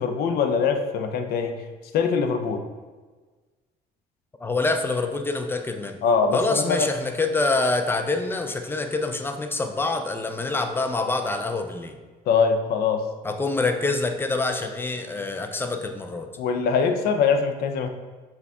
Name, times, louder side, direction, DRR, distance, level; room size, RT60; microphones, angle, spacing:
voice 1, 0.0-1.5 1.9-2.6 6.0-6.9 12.3-13.0 16.4-17.9, left 5 dB, 70° left, 7 dB, 0.5 m, -22 dB
voice 2, 4.4-6.0 6.3-12.0 13.2-16.3, left 3 dB, 15° left, 6 dB, 0.4 m, -26 dB
5.9 x 2.3 x 3.5 m, 1.4 s
cardioid pair, 110°, 17 cm